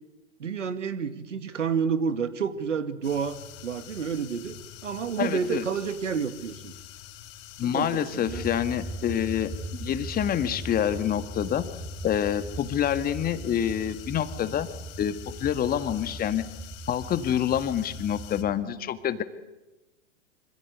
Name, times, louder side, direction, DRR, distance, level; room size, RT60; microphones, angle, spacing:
voice 1, 0.4-4.6 4.8-6.7 7.6-8.4, right 6 dB, 75° right, 10 dB, 2.3 m, -30 dB
sound 1, 3.0-18.4, left 11 dB, 45° left, 4.1 m, -46 dB
voice 2, 5.2-5.6 7.6-11.7 12.0-14.7 15.0-16.4 16.9-19.2, left 10 dB, 25° left, 10 dB, 1.8 m, -27 dB
sound 2, 8.3-18.6, right 2 dB, 25° right, 5.1 m, -39 dB
26.5 x 26.0 x 8.3 m, 1.0 s
hypercardioid pair, 105°, 37 cm